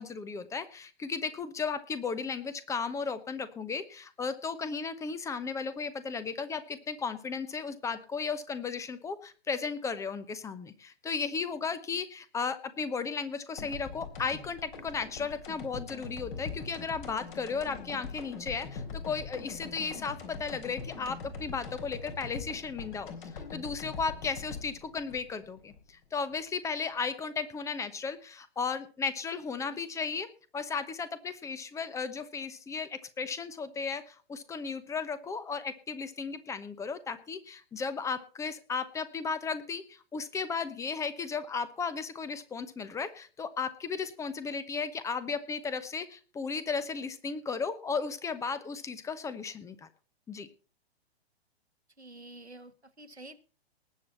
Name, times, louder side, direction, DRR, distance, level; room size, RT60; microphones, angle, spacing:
voice 1, 0.0-30.3 30.5-49.9 50.3-50.5, left 5 dB, 10° left, 14 dB, 0.9 m, -35 dB
sound 1, 13.6-26.4, left 5 dB, 50° left, 3.8 m, -42 dB
voice 2, 52.0-53.4, right 2 dB, 90° right, 10 dB, 1.4 m, -49 dB
19.5 x 7.8 x 4.1 m, 0.37 s
figure-of-eight pair, 115°, 32 cm